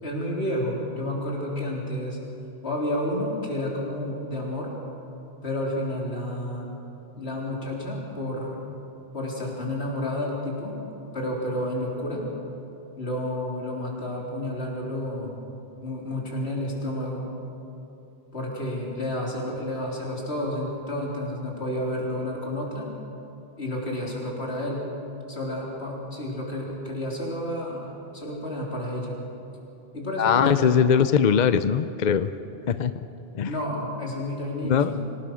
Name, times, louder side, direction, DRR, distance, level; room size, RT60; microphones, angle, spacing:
voice 1, 0.0-2.2 2.6-4.7 5.4-6.8 7.2-8.6 9.1-10.8 11.1-12.3 13.0-15.4 15.8-17.3 18.3-22.9 23.6-24.9 25.3-29.2 29.9-30.7 33.5-35.0, left 1 dB, 75° left, -3 dB, 4.2 m, -30 dB
voice 2, 30.2-32.3 32.7-32.9 33.3-33.5 34.6-34.9, left 7 dB, 50° left, 12 dB, 0.6 m, -21 dB
25.5 x 18.0 x 6.3 m, 2.9 s
omnidirectional pair, 1.1 m